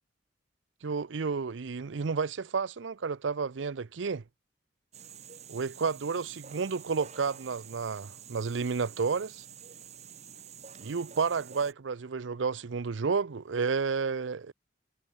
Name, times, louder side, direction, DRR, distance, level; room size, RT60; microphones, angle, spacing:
voice 1, 0.8-4.2 5.5-9.4 10.8-14.5, right 5 dB, 90° right, 0.6 m, -31 dB
sound 1, 4.9-11.7, right 7 dB, 40° right, 1.9 m, -48 dB
head